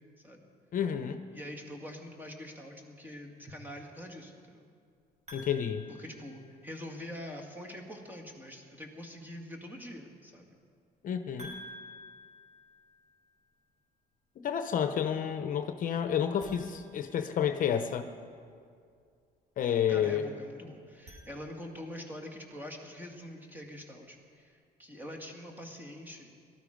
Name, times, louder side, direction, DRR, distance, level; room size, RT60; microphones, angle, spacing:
voice 1, 0.7-1.2 5.3-5.9 11.0-11.5 14.4-18.1 19.6-20.3, left 8 dB, 55° left, 8 dB, 0.8 m, -30 dB
voice 2, 1.3-4.7 5.9-10.5 19.9-26.3, left 1 dB, 10° right, 1 dB, 2.1 m, -44 dB
sound 1, 5.3-7.0 11.4-13.4 16.3-17.9 20.8-22.0, equal, 40° right, 5.1 m, -51 dB
18.0 x 13.0 x 5.1 m, 2.2 s
cardioid pair, 110°, 17 cm